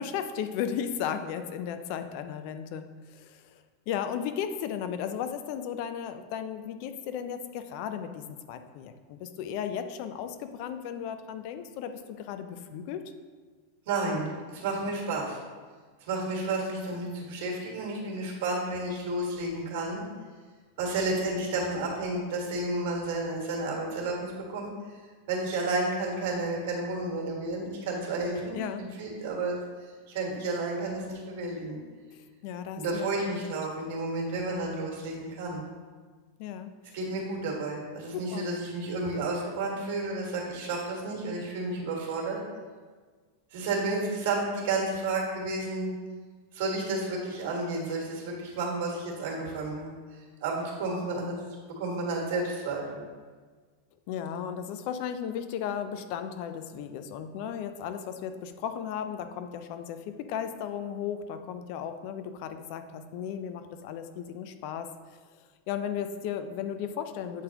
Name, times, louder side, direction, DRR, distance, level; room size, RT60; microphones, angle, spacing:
voice 1, 0.0-13.0 28.5-28.9 32.1-33.5 36.4-36.7 38.1-38.5 54.1-64.9 65.7-67.4, left 8 dB, 50° left, 9 dB, 0.4 m, -35 dB
voice 2, 13.9-15.4 16.0-20.0 20.8-24.7 25.3-29.6 30.1-31.8 32.7-35.6 36.9-42.4 43.5-45.9 46.5-51.4 51.8-53.0, right 2 dB, 60° right, -1 dB, 1.7 m, -31 dB
8.1 x 4.0 x 2.9 m, 1.5 s
supercardioid pair, 145°, 0 cm